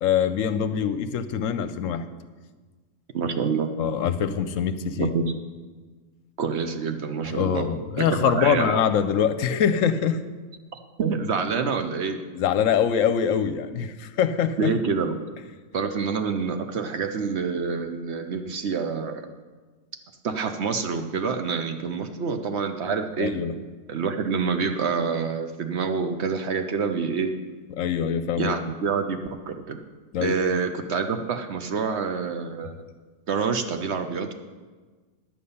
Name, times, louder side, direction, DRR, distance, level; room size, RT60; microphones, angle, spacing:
voice 1, 0.0-2.0 3.8-5.1 7.2-10.2 12.3-14.7 23.2-23.5 27.8-28.5 30.1-30.4, left 8 dB, 75° left, 11 dB, 0.9 m, -24 dB
voice 2, 3.1-3.7 5.0-5.2 6.4-7.7 8.0-8.8 11.0-12.2 14.6-15.1 15.7-19.3 20.2-23.3 23.9-27.3 28.4-29.2 29.5-29.8 30.2-32.7 33.3-34.3, right 5 dB, 60° right, 7 dB, 0.9 m, -27 dB
10.5 x 8.4 x 5.5 m, 1.4 s
omnidirectional pair, 1.5 m